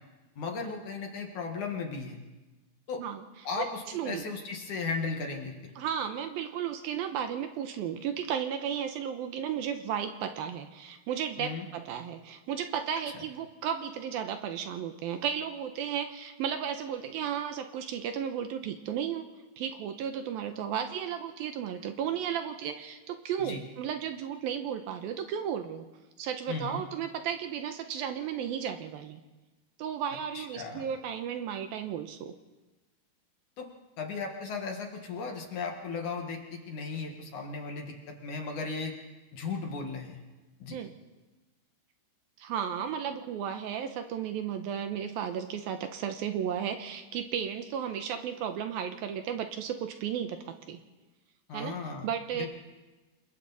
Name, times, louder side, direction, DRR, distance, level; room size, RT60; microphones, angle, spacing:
voice 1, 0.4-2.2 2.9-3.0 3.4-5.5 11.4-11.7 23.4-23.6 26.5-26.8 30.3-30.9 33.6-33.7 34.0-38.9 39.3-40.2 40.6-40.8 51.5-52.1 52.3-52.5, left 4 dB, 55° left, 2 dB, 2.8 m, -36 dB
voice 2, 3.6-4.2 5.8-19.3 19.6-25.8 26.2-29.2 29.8-32.3 40.7-40.9 42.4-50.8 51.5-52.5, right 8 dB, 75° right, 7 dB, 2.5 m, -34 dB
28.0 x 22.0 x 4.2 m, 1.2 s
omnidirectional pair, 4.7 m